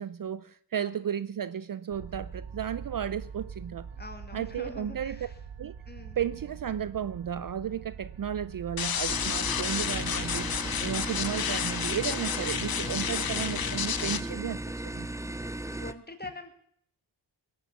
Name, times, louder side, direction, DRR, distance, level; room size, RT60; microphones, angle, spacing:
voice 1, 0.0-3.9 4.3-5.3 5.6-5.8 6.2-15.1, right 9 dB, 50° right, 0.5 m, -34 dB
sound 1, 1.9-11.3, right 7 dB, 75° right, 0.9 m, -43 dB
voice 2, 4.0-5.3 5.9-6.2 15.8-16.5, left 3 dB, 20° left, 2.2 m, -44 dB
sound 2, 8.8-14.2, left 8 dB, 55° left, 0.8 m, -31 dB
sound 3, 9.1-15.9, right 1 dB, 5° right, 0.6 m, -36 dB
20.0 x 7.8 x 7.1 m
wide cardioid pair, 85°, 43 cm